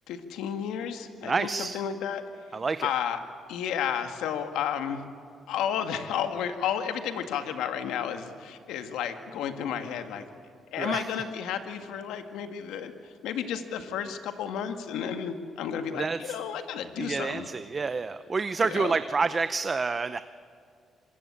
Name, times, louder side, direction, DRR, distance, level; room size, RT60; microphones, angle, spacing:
voice 1, 0.1-2.2 2.8-3.2 3.5-5.0 5.5-10.3 10.7-12.9 13.2-17.5 18.6-19.0, left 8 dB, 90° left, 7 dB, 1.9 m, -32 dB
voice 2, 1.2-1.8 2.5-2.9 10.8-11.1 15.9-16.4 17.0-20.2, right 4 dB, 35° right, 12 dB, 0.7 m, -28 dB
25.5 x 21.0 x 8.7 m, 2.3 s
cardioid pair, 90°, 0 cm